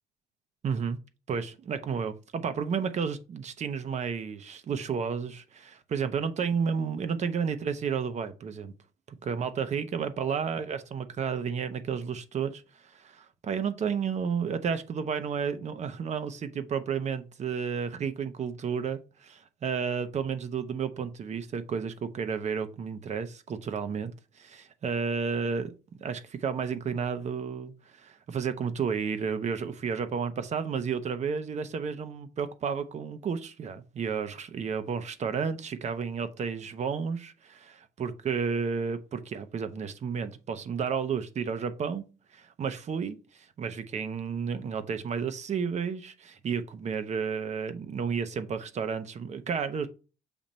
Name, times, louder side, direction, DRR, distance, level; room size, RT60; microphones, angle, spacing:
voice 1, 0.6-1.0 1.3-8.7 9.1-25.7 26.0-27.7 28.0-42.0 42.3-49.9, right 6 dB, 40° right, 0.9 m, -32 dB
7.1 x 3.0 x 5.2 m
cardioid pair, 110°, 17 cm